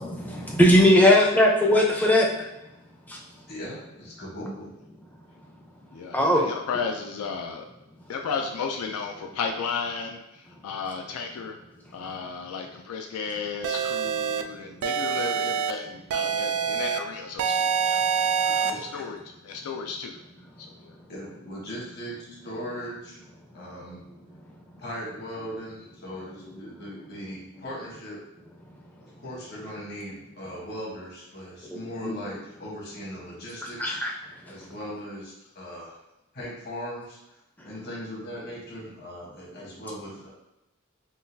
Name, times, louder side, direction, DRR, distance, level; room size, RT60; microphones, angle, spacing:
voice 1, 0.0-2.7 3.0-3.5 5.1-5.7 6.1-6.4 10.6-10.7 11.9-12.0 14.4-14.8 16.6-16.7 18.1-18.5 18.9-19.0 20.6-21.1 23.9-24.0 24.3-24.8 26.4-26.5 26.9-27.3 28.6-28.8 31.7-32.4 33.6-34.1 34.4-34.5 37.6-37.7, left 1 dB, 10° left, -1 dB, 0.4 m, -23 dB
voice 2, 3.5-4.7 18.3-18.8 21.1-23.2 23.5-24.0 24.8-28.2 29.0-34.0 34.4-36.0 36.3-37.4 37.6-40.3, equal, 45° left, -5 dB, 1.1 m, -39 dB
voice 3, 5.9-7.7 8.1-11.6 11.9-20.2 20.6-20.9, left 5 dB, 90° left, 3 dB, 0.3 m, -34 dB
sound 1, 13.6-14.4 14.8-15.7 16.1-17.0 17.4-18.7, right 7 dB, 80° right, 0.3 m, -25 dB
3.7 x 2.3 x 2.6 m, 0.94 s
head